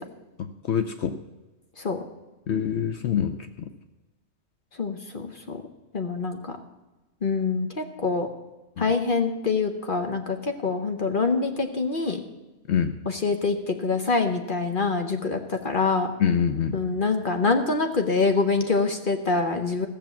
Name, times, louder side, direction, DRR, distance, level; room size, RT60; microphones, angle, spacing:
voice 1, 0.4-1.2 2.5-3.4 8.8-8.9 12.7-12.9 16.2-16.8, left 8 dB, 65° left, 8 dB, 0.9 m, -25 dB
voice 2, 4.8-5.6 5.9-6.6 7.2-8.3 8.8-12.2 13.0-16.1 16.7-19.9, left 4 dB, 45° left, 5 dB, 1.1 m, -25 dB
15.0 x 6.9 x 7.1 m, 1.1 s
omnidirectional pair, 1.3 m